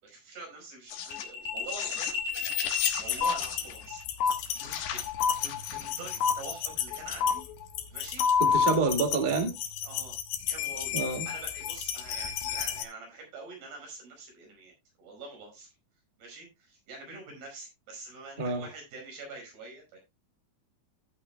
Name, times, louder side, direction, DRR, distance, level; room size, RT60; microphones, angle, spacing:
voice 1, 0.0-2.1 3.0-4.0 4.6-5.0 5.4-7.4 7.9-8.2 8.5-8.6 9.8-10.2 10.5-10.9 11.3-14.7 15.0-15.7 16.2-20.0, right 3 dB, 90° right, 7.1 m, -45 dB
sound 1, 0.9-12.8, left 9 dB, 90° left, 3.3 m, -34 dB
sound 2, 3.2-3.3 4.2-4.3 5.2-5.3 6.2-6.3 7.2-7.3 8.2-8.7, left 6 dB, 55° left, 2.4 m, -23 dB
voice 2, 8.4-9.5 10.9-11.3 18.4-18.7, right 3 dB, 40° right, 0.6 m, -27 dB
15.0 x 8.7 x 2.2 m
omnidirectional pair, 4.4 m